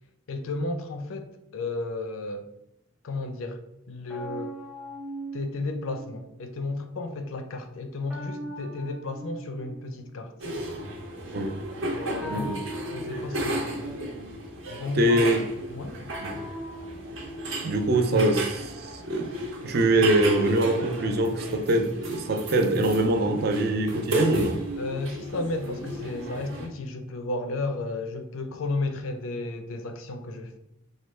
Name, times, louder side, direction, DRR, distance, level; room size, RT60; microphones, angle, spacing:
voice 1, 0.3-2.5 3.0-3.6 3.9-4.5 5.3-10.4 11.8-13.9 14.7-16.0 24.8-30.6, left 2 dB, 80° left, 0.4 m, -33 dB
sound 1, 4.1-6.3 8.1-10.2 12.1-14.1 16.1-18.0 20.1-20.6, right 1 dB, 5° right, 0.7 m, -40 dB
sound 2, 10.4-26.7, right 1 dB, 75° right, 0.8 m, -34 dB
voice 2, 12.3-12.6 14.9-15.4 16.2-16.4 17.6-19.3 19.6-24.6, right 1 dB, 50° right, 0.4 m, -24 dB
3.1 x 2.2 x 3.1 m
head